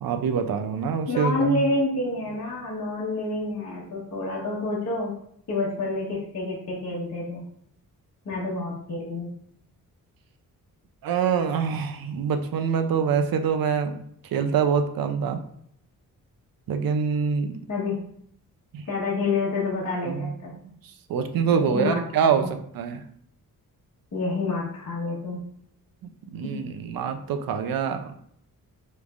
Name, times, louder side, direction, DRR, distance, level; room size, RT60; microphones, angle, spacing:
voice 1, 0.0-1.6 11.0-13.9 14.3-15.4 16.7-17.5 18.7-18.8 20.0-20.6 21.1-22.5 22.7-23.0 26.3-28.1, right 6 dB, 75° right, 8 dB, 0.6 m, -25 dB
voice 2, 1.1-5.1 5.5-7.4 8.2-9.3 17.7-18.0 18.9-20.5 21.5-22.5 24.1-25.4 26.4-26.6, left 2 dB, 50° left, -6 dB, 1.2 m, -28 dB
5.1 x 3.3 x 2.4 m, 0.67 s
wide cardioid pair, 110°, 35 cm